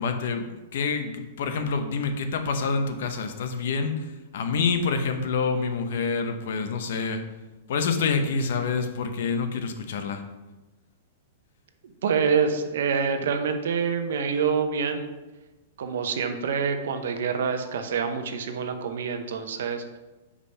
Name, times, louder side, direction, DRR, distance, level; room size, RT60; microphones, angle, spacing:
voice 1, 0.0-7.2 7.7-10.2, left 5 dB, 60° left, 7 dB, 0.8 m, -27 dB
voice 2, 12.0-15.1 15.8-20.0, right 6 dB, 70° right, 7 dB, 0.8 m, -26 dB
5.1 x 5.0 x 5.6 m, 1.1 s
supercardioid pair, 165°, 0 cm